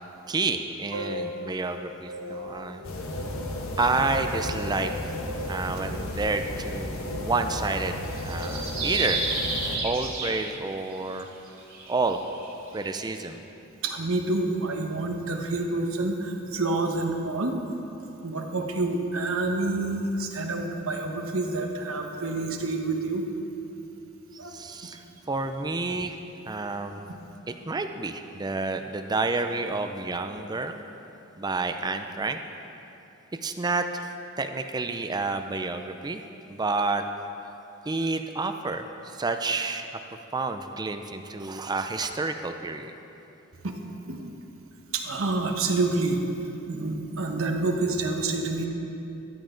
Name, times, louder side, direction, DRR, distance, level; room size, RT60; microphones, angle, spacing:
voice 1, 0.3-2.8 3.8-4.9 5.5-9.2 9.8-11.3 11.9-12.2 12.7-13.4 24.5-26.2 26.5-27.0 27.5-30.8 31.4-32.4 33.4-34.1 34.4-36.2 36.5-37.0 37.4-37.6 37.8-39.9 40.3-42.9, right 3 dB, 20° right, 7 dB, 0.4 m, -29 dB
voice 2, 0.9-1.8 2.1-2.9 13.8-17.6 18.2-23.2 24.4-24.6 24.9-25.0 43.6-43.7 44.0-44.3 44.9-46.2 46.7-48.7, right 2 dB, 75° right, 3 dB, 1.1 m, -28 dB
sound 1, 2.8-9.8, left 1 dB, 80° left, 1.2 m, -33 dB
sound 2, 8.0-11.0 11.6-13.1, right 3 dB, 45° right, 2.2 m, -32 dB
13.5 x 11.0 x 3.9 m, 2.9 s
head